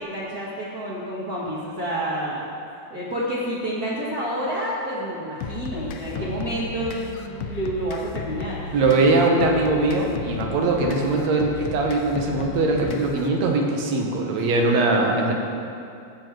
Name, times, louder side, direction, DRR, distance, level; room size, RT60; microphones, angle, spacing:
voice 1, 0.0-2.5 2.9-8.8, right 1 dB, 40° right, -8 dB, 1.6 m, -29 dB
sound 1, 5.4-13.4, left 5 dB, 90° left, 1.2 m, -34 dB
voice 2, 8.7-15.3, right 2 dB, 70° right, 1 dB, 2.4 m, -21 dB
15.5 x 7.0 x 4.6 m, 2.5 s
omnidirectional pair, 3.3 m